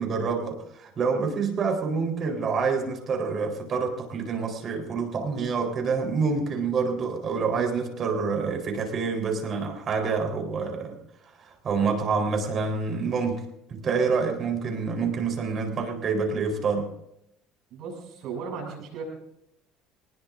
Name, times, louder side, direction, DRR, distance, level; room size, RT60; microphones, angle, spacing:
voice 1, 0.0-11.0 11.4-13.4 13.7-16.9, right 5 dB, 35° right, 2 dB, 4.1 m, -27 dB
voice 2, 17.7-19.0, right 6 dB, 60° right, 0 dB, 7.1 m, -36 dB
25.5 x 19.5 x 2.6 m, 0.80 s
cardioid pair, 135°, 0 cm